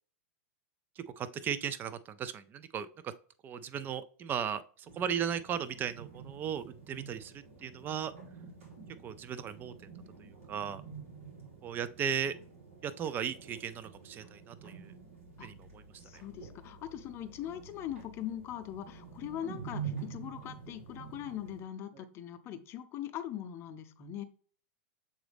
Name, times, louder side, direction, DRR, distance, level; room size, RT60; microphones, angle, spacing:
voice 1, 1.0-3.1 3.4-8.1 9.0-9.7 10.2-10.8 11.6-12.3 12.8-14.9 15.4-15.8 16.1-16.2, right 8 dB, 25° right, 14 dB, 0.5 m, -36 dB
sound 1, 4.9-21.6, right 6 dB, 80° right, 3.3 m, -48 dB
voice 2, 16.0-24.2, left 11 dB, 35° left, 9 dB, 0.7 m, -41 dB
7.1 x 3.9 x 3.4 m, 0.43 s
hypercardioid pair, 120°, 7 cm